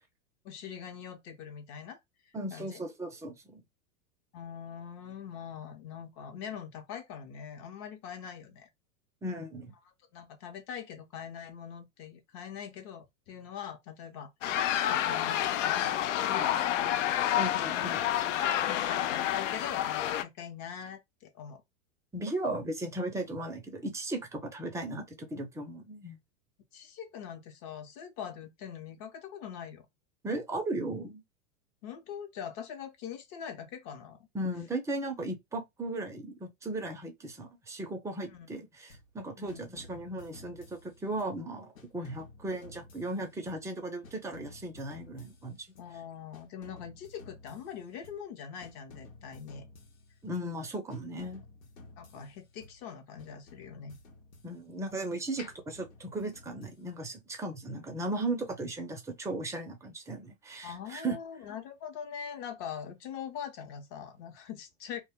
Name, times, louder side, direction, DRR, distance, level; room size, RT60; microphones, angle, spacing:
voice 1, 0.4-2.0 2.5-2.8 4.3-8.7 10.1-14.3 14.8-17.1 17.7-18.2 18.6-21.6 26.7-29.9 31.8-34.2 38.3-38.5 39.4-39.7 42.0-42.2 45.8-49.7 52.0-54.0 55.4-55.5 60.6-65.0, left 8 dB, 45° left, 0.8 m, -43 dB
voice 2, 2.3-3.6 9.2-9.7 16.4-16.5 17.4-18.0 22.1-26.2 30.2-31.2 34.3-45.6 50.2-51.4 54.4-61.2, right 2 dB, 10° right, 0.5 m, -36 dB
sound 1, 14.4-20.2, left 11 dB, 70° left, 0.5 m, -29 dB
sound 2, 38.9-39.2 39.5-41.4 41.7-43.8 44.0-46.0 46.3-48.3 48.6-50.6 50.9-52.9 53.2-55.1 55.5-57.1, left 2 dB, 90° left, 1.0 m, -54 dB
2.2 x 2.1 x 3.5 m
hypercardioid pair, 120°, 39 cm